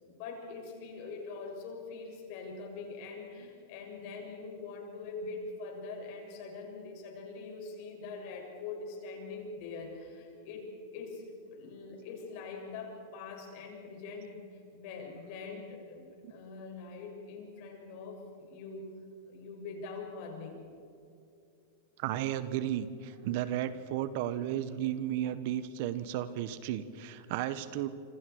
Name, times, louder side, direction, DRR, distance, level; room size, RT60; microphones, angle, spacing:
voice 1, 0.0-18.9 19.3-20.7, left 4 dB, 55° left, 1 dB, 7.2 m, -43 dB
voice 2, 22.0-27.9, right 11 dB, 60° right, 13 dB, 1.4 m, -34 dB
27.0 x 26.5 x 4.9 m, 2.6 s
hypercardioid pair, 110°, 0 cm